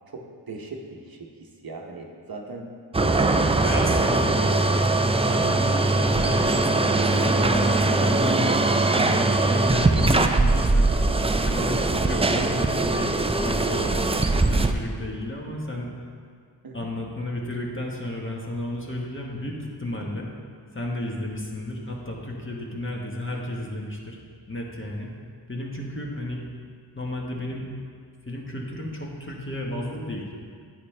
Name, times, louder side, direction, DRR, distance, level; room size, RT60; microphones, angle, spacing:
voice 1, 0.1-2.7 3.2-4.6 16.6-16.9 20.0-20.2, right 3 dB, 50° right, 1 dB, 1.0 m, -37 dB
sound 1, 2.9-14.7, right 2 dB, 15° right, 0.4 m, -21 dB
voice 2, 3.6-10.9 11.4-15.9 16.7-20.3 20.7-24.2 24.5-25.1 25.5-26.4 26.9-27.7 28.3-30.3, left 1 dB, 25° left, -2 dB, 1.4 m, -33 dB
9.4 x 8.7 x 3.3 m, 2.1 s
wide cardioid pair, 70°, 45 cm